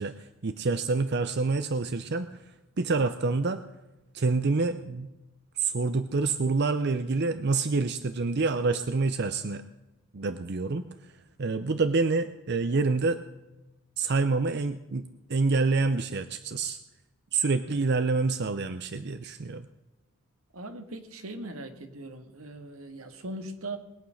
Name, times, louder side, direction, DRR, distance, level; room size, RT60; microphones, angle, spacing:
voice 1, 0.0-2.4 2.8-3.6 4.1-5.1 5.6-9.6 10.1-11.1 11.4-13.2 14.0-16.8 17.3-19.7, right 3 dB, 50° right, 11 dB, 0.6 m, -27 dB
voice 2, 20.5-23.8, right 2 dB, 80° right, 8 dB, 1.7 m, -40 dB
21.0 x 8.8 x 6.4 m, 1.0 s
head